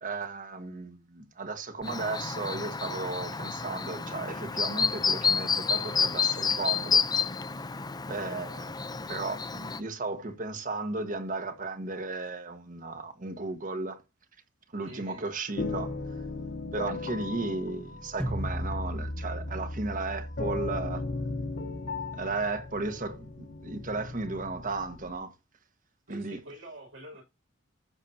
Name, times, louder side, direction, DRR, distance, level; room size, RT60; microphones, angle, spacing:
voice 1, 0.0-7.0 8.1-8.8 9.1-14.0 14.7-16.0 16.7-21.1 22.1-25.3 26.1-26.4, right 3 dB, 40° right, 1.4 m, -35 dB
Chirp tweet, 1.8-9.8, left 5 dB, 20° left, 0.6 m, -30 dB
voice 2, 14.8-15.3 26.1-27.2, equal, 75° right, 5.9 m, -46 dB
sound 1, 15.6-25.2, left 3 dB, 50° left, 1.1 m, -37 dB
sound 2, 18.2-23.2, equal, 5° left, 1.1 m, -37 dB
14.5 x 6.8 x 2.8 m
head